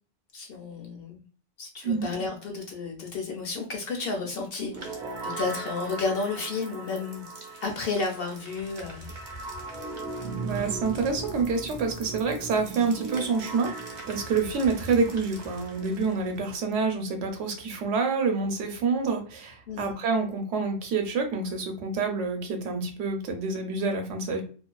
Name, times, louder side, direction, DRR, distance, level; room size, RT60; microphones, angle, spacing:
voice 1, 0.3-1.2 1.6-7.3 7.6-9.1 19.7-19.9, left 4 dB, 65° left, 2 dB, 0.7 m, -32 dB
sound 1, 4.7-16.6, right 3 dB, 50° right, 0.6 m, -38 dB
voice 2, 10.4-13.7 14.1-24.4, right 4 dB, 75° right, 4 dB, 0.9 m, -27 dB
2.4 x 2.2 x 2.2 m, 0.40 s
omnidirectional pair, 1.3 m